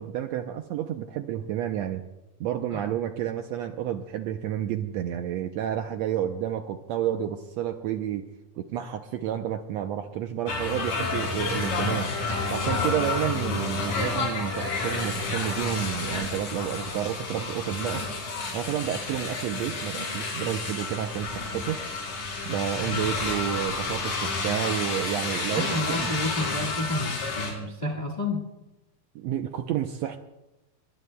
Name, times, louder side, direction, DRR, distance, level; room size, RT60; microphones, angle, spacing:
voice 1, 0.0-2.0 2.4-8.3 8.6-12.1 12.5-18.1 18.5-21.8 22.4-26.1 29.1-30.2, right 10 dB, 75° right, 6 dB, 1.6 m, -30 dB
sound 1, 10.5-27.5, left 3 dB, 75° left, 5.0 m, -30 dB
voice 2, 25.5-28.4, left 1 dB, 30° left, 0 dB, 0.8 m, -30 dB
26.0 x 22.0 x 2.2 m, 0.99 s
omnidirectional pair, 3.6 m